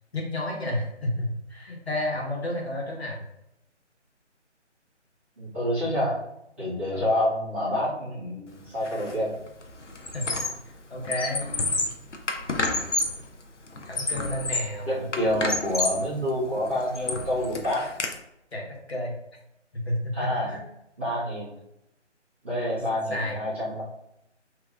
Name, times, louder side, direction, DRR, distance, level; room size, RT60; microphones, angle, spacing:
voice 1, 0.1-3.2 6.9-7.0 10.1-10.3 10.9-11.5 13.8-15.0 18.5-19.1 19.7-20.6 23.1-23.4, left 1 dB, 60° left, -2 dB, 1.4 m, -31 dB
voice 2, 5.4-6.2 6.6-9.3 14.9-17.8 20.1-20.5 21.0-21.5 22.4-23.8, left 1 dB, 10° right, -14 dB, 1.0 m, -27 dB
Squeak, 8.8-9.1 9.5-10.7 11.0-13.2 13.7-14.8 15.1-16.1 16.6-18.1, left 2 dB, 75° left, 0.8 m, -29 dB
6.1 x 2.9 x 2.5 m, 0.83 s
figure-of-eight pair, 155°, 36 cm